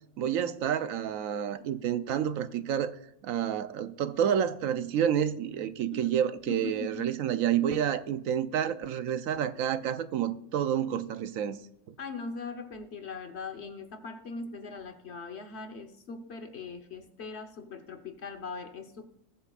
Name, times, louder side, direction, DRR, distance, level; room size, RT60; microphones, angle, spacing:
voice 1, 0.2-2.9 3.2-11.6 11.9-12.0, right 9 dB, 80° right, 1.1 m, -29 dB
voice 2, 6.5-7.1 12.0-19.1, left 4 dB, 55° left, 1.3 m, -40 dB
19.5 x 7.6 x 2.4 m
omnidirectional pair, 1.4 m